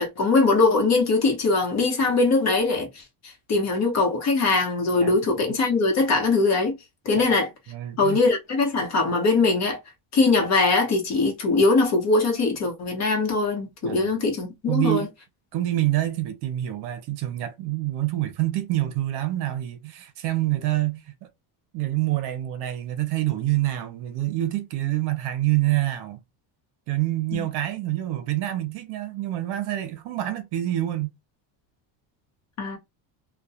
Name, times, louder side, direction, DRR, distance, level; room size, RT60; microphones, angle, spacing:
voice 1, 0.0-3.0 3.5-6.7 7.0-7.5 8.0-9.8 10.1-15.1 27.3-27.5 32.6-32.8, left 3 dB, 40° left, 0.9 m, -21 dB
voice 2, 5.0-5.4 7.2-7.3 7.7-8.2 13.8-14.1 14.7-15.1 15.5-21.0 21.7-26.2 26.9-31.1, right 15 dB, 65° right, 0.7 m, -26 dB
2.2 x 2.2 x 2.7 m
cardioid pair, 150°, 44 cm